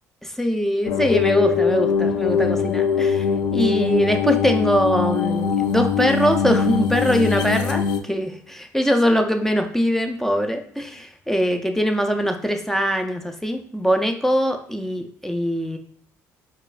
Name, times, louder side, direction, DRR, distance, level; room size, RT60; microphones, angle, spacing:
voice 1, 0.4-3.3 3.5-15.8, equal, 5° left, 5 dB, 0.5 m, -22 dB
sound 1, 0.8-8.0, left 6 dB, 70° left, 0.4 m, -22 dB
4.6 x 2.4 x 2.4 m, 0.64 s
supercardioid pair, 70°, 7 cm